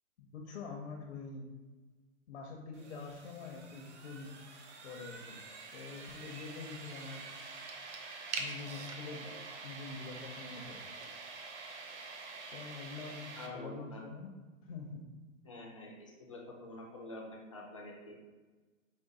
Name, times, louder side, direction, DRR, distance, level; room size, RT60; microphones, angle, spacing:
voice 1, 0.2-1.5 2.3-4.3 4.8-5.4 5.7-7.2 8.4-9.3 9.6-10.9 12.5-14.3 14.6-15.1, left 4 dB, 55° left, 0 dB, 0.7 m, -45 dB
sound 1, 2.7-13.5, right 4 dB, 55° right, 0.7 m, -46 dB
voice 2, 13.3-14.0 15.4-18.2, left 2 dB, 25° left, -2 dB, 0.4 m, -47 dB
5.1 x 2.1 x 3.7 m, 1.3 s
hypercardioid pair, 160°, 41 cm